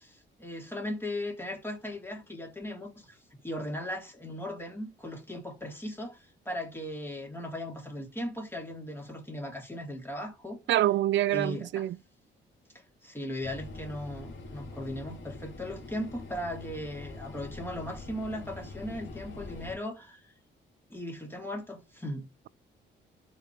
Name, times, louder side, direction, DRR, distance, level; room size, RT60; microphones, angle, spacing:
voice 1, 0.0-3.2 3.4-10.6 11.3-11.8 13.0-20.2 20.9-22.3, left 1 dB, 10° left, 3.6 m, -38 dB
voice 2, 10.7-12.0, right 13 dB, 65° right, 0.5 m, -26 dB
sound 1, 13.4-19.8, left 2 dB, 75° left, 2.3 m, -44 dB
12.5 x 5.3 x 3.5 m
cardioid pair, 90°, 20 cm